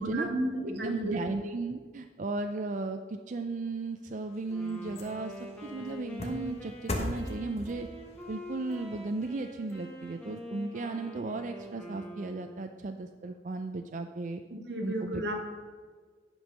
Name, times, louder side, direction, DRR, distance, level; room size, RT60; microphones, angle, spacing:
voice 1, 0.0-1.3 14.5-15.4, right 1 dB, 80° right, 3 dB, 1.7 m, -33 dB
voice 2, 0.7-7.9 8.3-14.4 14.8-15.4, right 3 dB, 45° right, 6 dB, 0.4 m, -35 dB
sound 1, 3.9-10.4 10.8-10.9, left 1 dB, 40° left, 1.2 m, -41 dB
Wind instrument woodwind instrument, 4.5-12.8, equal, 5° left, 1.5 m, -45 dB
10.5 x 5.4 x 6.2 m, 1.5 s
head